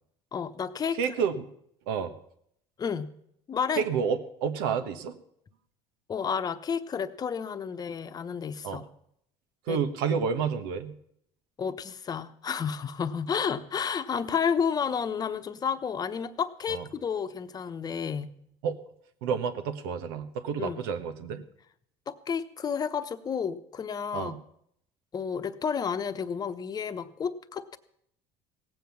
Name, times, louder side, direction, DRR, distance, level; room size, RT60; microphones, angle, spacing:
voice 1, 0.3-1.1 2.8-3.1 3.5-3.9 6.1-8.9 9.7-9.8 10.1-10.2 11.6-18.4 20.6-20.8 22.1-24.4 25.1-27.8, left 6 dB, 35° left, 11 dB, 0.9 m, -31 dB
voice 2, 1.0-1.5 1.9-2.1 3.8-5.2 8.6-8.8 9.7-10.9 16.7-16.8 18.6-18.8 19.2-21.4 24.1-24.4, right 6 dB, 90° right, 10 dB, 1.2 m, -29 dB
17.0 x 7.6 x 7.1 m, 0.70 s
supercardioid pair, 95°, 12 cm